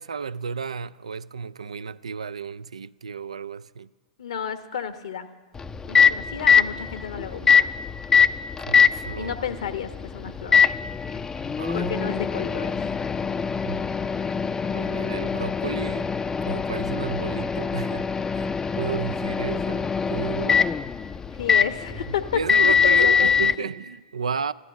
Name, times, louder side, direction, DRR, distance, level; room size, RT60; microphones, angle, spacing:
voice 1, 0.0-3.9 8.6-9.3 11.6-12.0 13.6-13.8 14.7-16.1 16.5-20.7 21.9-24.5, right 6 dB, 80° right, 0.3 m, -33 dB
voice 2, 4.2-5.3 5.9-7.7 9.2-10.6 11.7-12.8 21.4-23.7, left 8 dB, 70° left, 1.0 m, -32 dB
Microwave oven, 5.5-23.6, left 6 dB, 15° left, 0.4 m, -23 dB
13.0 x 11.0 x 8.5 m
figure-of-eight pair, 95°, 3 cm